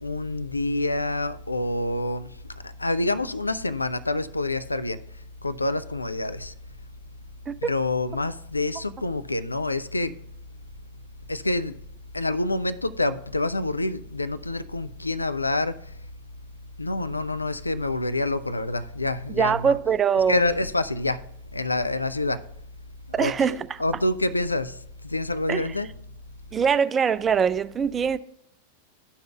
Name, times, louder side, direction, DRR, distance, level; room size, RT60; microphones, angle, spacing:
voice 1, 0.0-2.3 2.6-5.0 5.4-6.5 7.6-10.1 11.3-11.8 12.1-15.8 16.8-19.7 20.3-21.2 21.5-22.4 23.2-24.7 25.0-25.9, left 2 dB, 80° left, 0.4 m, -27 dB
voice 2, 19.3-20.4 23.1-23.8 25.5-25.7 26.5-28.2, right 7 dB, 20° right, 0.3 m, -23 dB
13.0 x 5.5 x 2.4 m
figure-of-eight pair, 90°, 0 cm